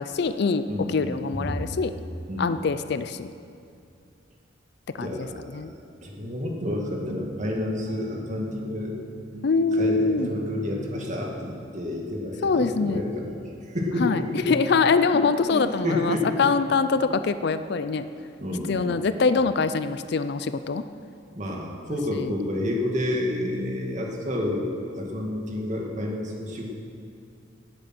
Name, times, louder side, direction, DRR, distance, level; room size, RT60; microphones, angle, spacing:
voice 1, 0.0-1.9 2.4-3.3 4.9-5.3 5.5-5.7 9.4-10.3 12.4-13.0 14.0-18.1 18.7-20.8 22.1-22.4, left 4 dB, 60° left, 12 dB, 0.4 m, -24 dB
voice 2, 0.7-1.6 2.3-2.5 5.0-5.7 6.0-8.9 9.7-14.6 15.1-16.5 18.4-19.0 21.3-26.7, left 1 dB, 40° right, 0 dB, 2.1 m, -30 dB
Guitar, 6.6-11.8, right 1 dB, 60° right, 0.8 m, -42 dB
17.5 x 8.6 x 6.0 m, 2.5 s
head